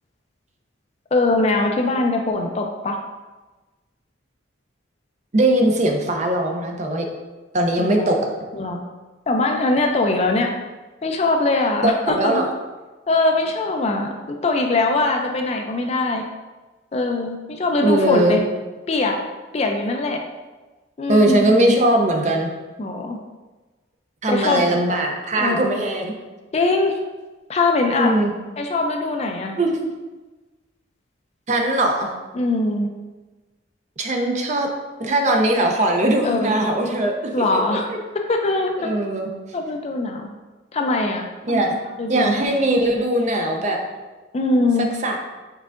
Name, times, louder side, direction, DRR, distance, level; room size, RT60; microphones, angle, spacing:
voice 1, 1.1-3.0 7.8-8.1 8.5-8.8 9.3-10.5 11.0-12.4 13.1-16.2 16.9-18.4 18.9-19.2 19.5-20.2 21.0-21.5 22.8-23.2 24.3-24.7 25.4-25.6 26.5-27.0 27.5-28.1 28.6-29.5 32.3-32.9 36.2-36.5 37.3-38.9 39.5-40.3 40.7-41.6 42.0-42.4 44.3-44.9, left 2 dB, 35° left, 3 dB, 0.4 m, -22 dB
voice 2, 5.3-7.1 7.5-8.2 10.3-10.4 11.8-12.5 17.8-18.4 21.1-22.5 24.2-26.1 27.9-28.3 29.6-29.9 31.5-32.1 34.0-34.7 35.0-37.1 37.5-37.6 37.9-38.0 38.8-39.3 41.4-41.8 42.1-43.8 45.0-45.2, right 1 dB, 35° right, 2 dB, 0.5 m, -20 dB
5.5 x 3.6 x 2.5 m, 1.2 s
head